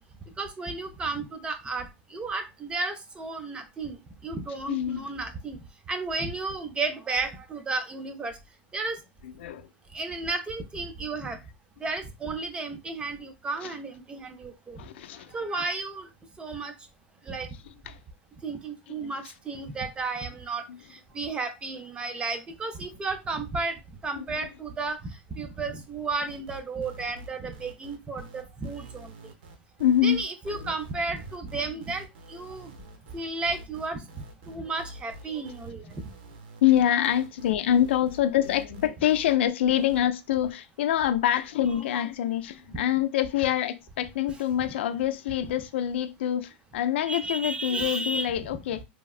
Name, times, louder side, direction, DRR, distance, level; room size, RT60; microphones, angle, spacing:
voice 1, 0.4-4.0 4.2-5.6 5.9-8.4 8.7-9.0 9.9-11.4 11.8-14.8 15.3-16.1 16.4-16.7 17.2-17.5 18.4-20.6 20.9-25.1 25.4-29.1 30.0-32.7 33.1-34.0 34.5-35.9 41.9-42.0 42.7-42.8 47.1-48.3, right 3 dB, 15° right, 0.5 m, -33 dB
voice 2, 4.7-5.0 9.2-9.7 13.6-13.7 14.8-15.3 17.9-18.0 18.9-19.1 20.7-20.8 24.2-24.3 29.8-30.7 36.6-48.8, left 11 dB, 80° left, 0.3 m, -26 dB
sound 1, 26.3-39.3 39.8-40.0, right 1 dB, 70° right, 0.7 m, -46 dB
3.4 x 2.0 x 2.3 m
supercardioid pair, 135°, 6 cm